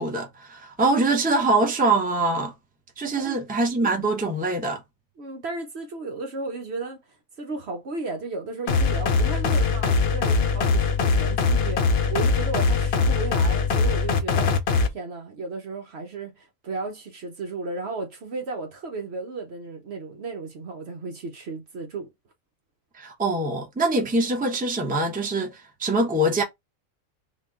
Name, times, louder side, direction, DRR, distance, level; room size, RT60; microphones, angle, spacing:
voice 1, 0.0-2.5 3.0-4.8 23.0-26.4, right 2 dB, 10° right, 0.7 m, -24 dB
voice 2, 5.2-7.0 7.4-14.5 14.9-22.1, right 3 dB, 55° right, 0.9 m, -34 dB
sound 1, 8.7-14.9, left 4 dB, 60° left, 0.8 m, -22 dB
3.8 x 2.3 x 3.5 m
omnidirectional pair, 1.4 m